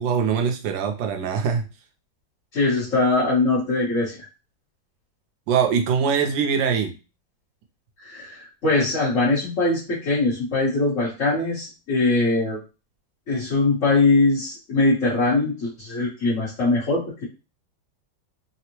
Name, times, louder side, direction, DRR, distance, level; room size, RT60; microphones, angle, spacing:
voice 1, 0.0-1.6 5.5-6.9, right 6 dB, 80° right, 4 dB, 1.3 m, -22 dB
voice 2, 2.5-4.2 8.0-12.6 13.3-17.2, left 2 dB, 50° left, -8 dB, 1.2 m, -22 dB
3.5 x 2.0 x 2.9 m, 0.31 s
omnidirectional pair, 2.0 m